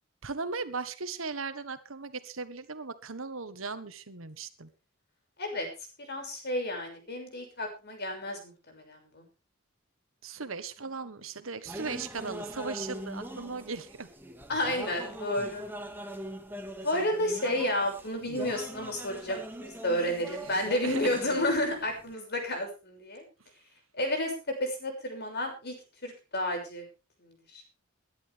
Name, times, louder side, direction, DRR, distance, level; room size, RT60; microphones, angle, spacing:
voice 1, 0.2-4.7 10.2-14.1 20.0-21.2, right 4 dB, 80° right, 12 dB, 1.5 m, -38 dB
voice 2, 6.1-9.2 14.5-15.7 16.8-23.2 24.0-25.7 26.0-26.8 27.2-27.6, left 1 dB, 55° left, 3 dB, 6.5 m, -31 dB
sound 1, 11.6-22.1, right 1 dB, 10° right, 2.0 m, -42 dB
22.5 x 11.0 x 3.5 m, 0.32 s
head